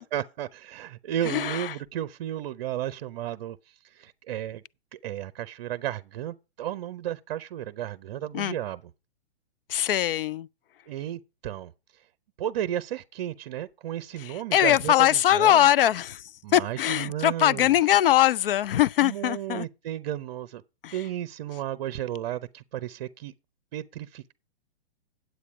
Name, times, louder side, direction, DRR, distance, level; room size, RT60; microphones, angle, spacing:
voice 1, 0.0-3.6 3.9-4.6 4.9-8.8 10.9-11.7 12.4-15.7 16.4-17.8 19.0-20.6 20.9-23.3 23.7-24.3, right 11 dB, 40° right, 0.6 m, -33 dB
voice 2, 1.3-1.7 8.3-8.6 9.7-10.5 14.3-16.2 16.5-19.7 20.8-20.9, left 12 dB, 60° left, 0.4 m, -22 dB
9.7 x 8.1 x 4.7 m
figure-of-eight pair, 125°, 32 cm